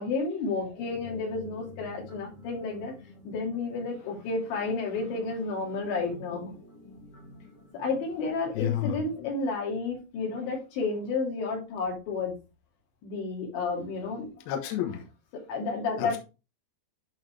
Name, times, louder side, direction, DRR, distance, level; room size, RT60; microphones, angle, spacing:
voice 1, 0.0-2.9 3.2-6.5 7.7-12.3 13.0-14.3 14.9-15.0 15.5-16.2, left 4 dB, 85° left, 5.0 m, -31 dB
sound 1, 0.7-8.3, left 1 dB, 45° left, 2.2 m, -49 dB
voice 2, 8.6-9.0 14.5-15.0 16.0-16.2, left 11 dB, 70° left, 2.8 m, -30 dB
11.5 x 4.0 x 3.3 m
omnidirectional pair, 5.0 m